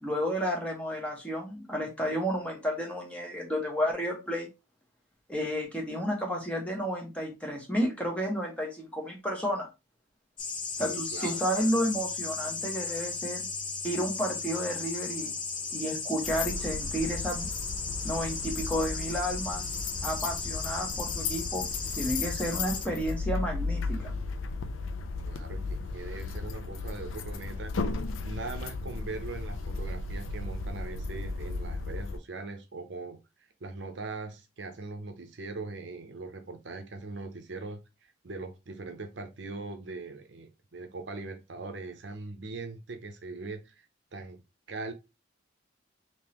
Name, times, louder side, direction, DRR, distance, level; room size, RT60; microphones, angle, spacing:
voice 1, 0.0-4.5 5.3-9.7 10.8-13.5 13.8-15.3 15.7-17.5 18.0-19.6 20.0-21.7 22.0-24.1, equal, 5° left, 0 dB, 0.9 m, -31 dB
sound 1, 10.4-22.8, left 4 dB, 25° left, 0.5 m, -36 dB
voice 2, 10.7-11.5 25.2-37.8 38.2-43.9 44.1-44.4 44.7-44.9, right 3 dB, 60° right, 6 dB, 0.6 m, -41 dB
sound 2, 16.2-32.2, left 3 dB, 80° left, 0.4 m, -35 dB
3.6 x 2.9 x 2.9 m, 0.26 s
head